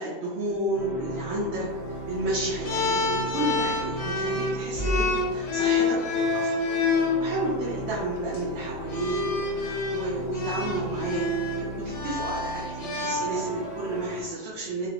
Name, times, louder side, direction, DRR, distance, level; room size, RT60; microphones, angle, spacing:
voice 1, 0.0-6.5 7.2-14.9, right 2 dB, 80° right, -5 dB, 0.9 m, -32 dB
sound 1, 0.7-14.2, equal, 45° left, 1.6 m, -37 dB
sound 2, 2.6-7.2 8.2-8.4 8.9-13.7, left 4 dB, 60° left, 0.3 m, -27 dB
3.1 x 2.9 x 2.8 m, 1.4 s
omnidirectional pair, 1.2 m